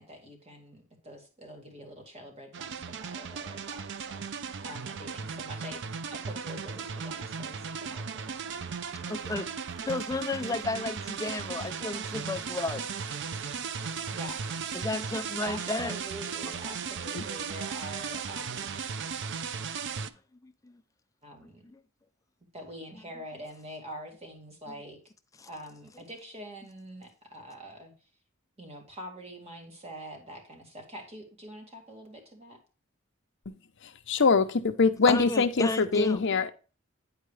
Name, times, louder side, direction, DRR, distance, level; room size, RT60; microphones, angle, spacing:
voice 1, 0.0-8.7 14.1-14.4 15.4-18.9 21.2-21.7 22.5-25.0 25.4-27.9 28.6-32.6, equal, 30° right, 2.1 m, -45 dB
sound 1, 2.5-20.1, right 6 dB, 60° right, 0.5 m, -36 dB
voice 2, 8.8-9.5 9.8-13.0 13.3-13.4 14.7-15.9 20.4-20.8 21.6-21.8 25.4-25.5 35.1-36.2, left 2 dB, 15° left, 0.5 m, -33 dB
voice 3, 34.1-36.5, left 4 dB, 60° left, 0.7 m, -23 dB
9.8 x 4.6 x 3.3 m
head